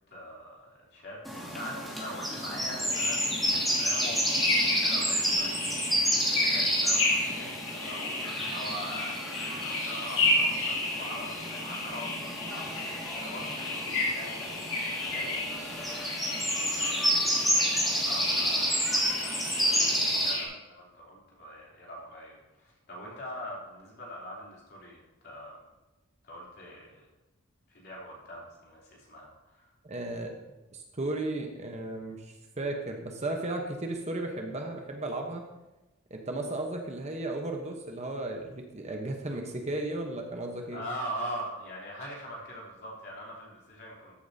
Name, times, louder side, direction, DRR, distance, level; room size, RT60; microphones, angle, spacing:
voice 1, 0.1-14.6 15.0-16.7 17.3-25.6 26.2-27.1 27.7-29.7 40.7-44.2, equal, 50° left, -4 dB, 3.1 m, -43 dB
sound 1, 1.3-20.3, equal, ahead, 1.9 m, -30 dB
sound 2, 2.9-20.4, left 2 dB, 70° left, 2.3 m, -33 dB
voice 2, 29.8-30.3 30.7-35.4 36.1-40.8, right 2 dB, 30° right, 3 dB, 1.0 m, -35 dB
13.5 x 8.5 x 2.7 m, 1.0 s
head